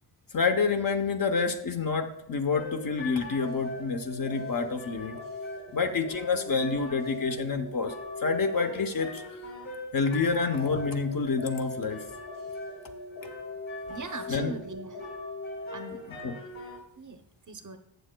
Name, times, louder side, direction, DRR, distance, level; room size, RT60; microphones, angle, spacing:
voice 1, 0.3-5.2 5.7-8.0 8.2-9.2 9.9-12.0 14.3-14.5 16.2-16.3, left 4 dB, 45° left, 6 dB, 0.8 m, -28 dB
sound 1, 2.5-16.8, left 2 dB, 75° left, 3.7 m, -39 dB
voice 2, 13.9-15.0 15.7-16.1 17.0-17.8, right 3 dB, 40° right, 7 dB, 0.7 m, -41 dB
14.0 x 8.1 x 2.2 m, 0.76 s
wide cardioid pair, 115°, 49 cm